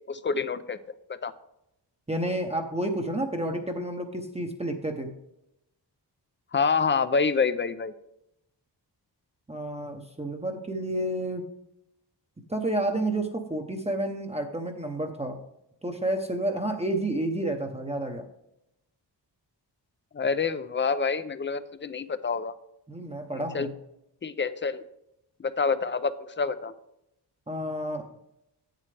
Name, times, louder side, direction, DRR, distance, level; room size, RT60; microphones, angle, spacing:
voice 1, 0.1-0.8 1.1-1.3 6.5-7.9 20.1-22.5 23.3-23.7 24.2-24.8 25.4-26.7, left 5 dB, 30° left, 14 dB, 0.4 m, -27 dB
voice 2, 2.1-5.1 9.5-11.4 12.5-15.4 15.8-18.3 22.9-23.7 27.5-28.1, right 1 dB, 15° right, 3 dB, 0.7 m, -30 dB
8.7 x 7.6 x 3.3 m, 0.83 s
wide cardioid pair, 135°, 43 cm